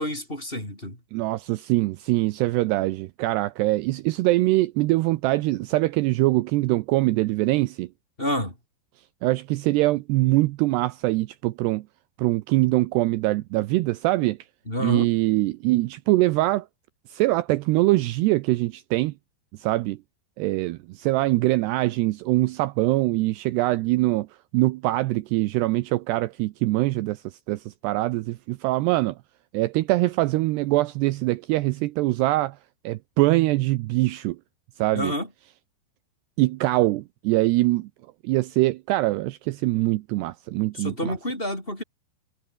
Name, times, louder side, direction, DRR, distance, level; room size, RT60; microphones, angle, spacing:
voice 1, 0.0-1.0 8.2-8.5 14.7-15.1 34.9-35.3 40.7-41.8, left 1 dB, 10° left, 7.6 m, -29 dB
voice 2, 1.1-7.9 9.2-11.8 12.2-14.4 14.8-16.7 17.1-19.1 19.6-20.0 20.4-24.3 24.5-27.2 27.5-29.2 29.5-32.6 32.9-34.4 34.8-35.1 36.4-37.9 38.2-41.1, right 19 dB, 80° right, 2.7 m, -23 dB
omnidirectional pair, 5.1 m